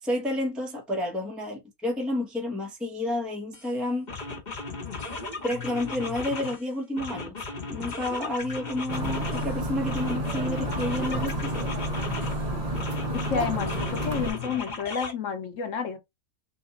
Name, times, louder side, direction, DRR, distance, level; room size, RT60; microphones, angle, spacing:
voice 1, 0.0-4.1 5.4-7.4 7.7-11.7, left 1 dB, ahead, 1.1 m, -30 dB
sound 1, 3.5-3.7 4.1-6.6 7.0-9.5 9.9-12.4 12.7-15.1, left 3 dB, 30° left, 1.5 m, -36 dB
sound 2, 8.9-14.3, right 1 dB, 25° right, 1.2 m, -30 dB
voice 2, 13.1-16.0, left 6 dB, 60° left, 1.0 m, -30 dB
4.1 x 2.6 x 3.9 m
omnidirectional pair, 1.6 m